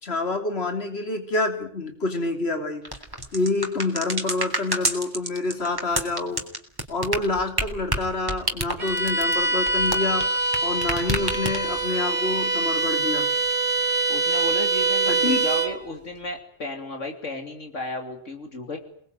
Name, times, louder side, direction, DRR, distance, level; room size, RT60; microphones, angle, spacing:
voice 1, 0.0-2.8 3.3-6.4 6.9-10.3 10.6-13.3 15.1-15.4, left 2 dB, 55° left, 6 dB, 3.3 m, -27 dB
sound 1, 2.9-10.6 10.8-11.8, right 1 dB, 15° right, 3.4 m, -28 dB
Bowed string instrument, 8.8-15.8, right 3 dB, 35° right, 3.4 m, -24 dB
voice 2, 14.1-18.8, left 2 dB, 75° left, 4 dB, 3.1 m, -34 dB
29.0 x 20.0 x 9.1 m, 0.62 s
omnidirectional pair, 1.3 m